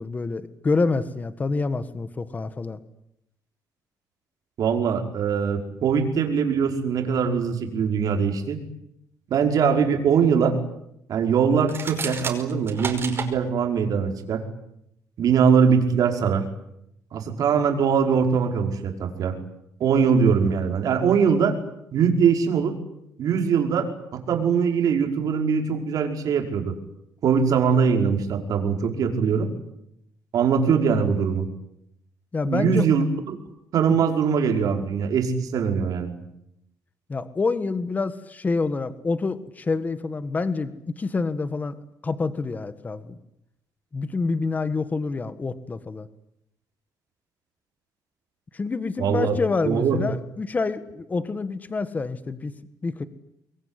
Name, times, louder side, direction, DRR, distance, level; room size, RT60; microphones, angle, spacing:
voice 1, 0.0-2.8 32.3-32.8 33.9-34.0 37.1-41.7 42.0-43.2 43.9-46.1 48.5-52.5 52.8-53.0, left 3 dB, 25° left, 12 dB, 1.6 m, -27 dB
voice 2, 4.6-8.6 9.3-10.6 11.1-14.4 15.2-16.4 17.1-19.4 19.8-21.6 21.9-22.7 23.2-26.7 27.2-29.5 30.3-31.4 32.5-33.4 33.7-36.1 49.0-49.4 49.6-50.0, right 6 dB, 60° right, 4 dB, 5.3 m, -22 dB
sound 1, 11.6-13.3, right 5 dB, 35° right, 5.4 m, -31 dB
26.0 x 22.0 x 9.9 m, 0.80 s
cardioid pair, 130°, 7 cm